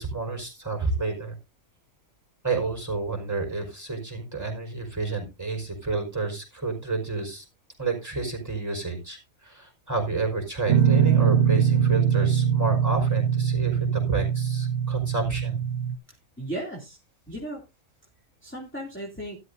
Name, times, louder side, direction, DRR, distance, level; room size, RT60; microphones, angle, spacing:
voice 1, 0.0-1.3 2.4-7.4 7.8-15.6, right 3 dB, 10° right, 2 dB, 4.9 m, -30 dB
Guitar, 10.7-15.9, right 8 dB, 65° right, 1.2 m, -22 dB
voice 2, 16.1-17.0 17.3-17.6 18.4-19.4, right 1 dB, 10° left, -2 dB, 2.7 m, -36 dB
13.0 x 12.0 x 2.7 m, 0.26 s
omnidirectional pair, 1.5 m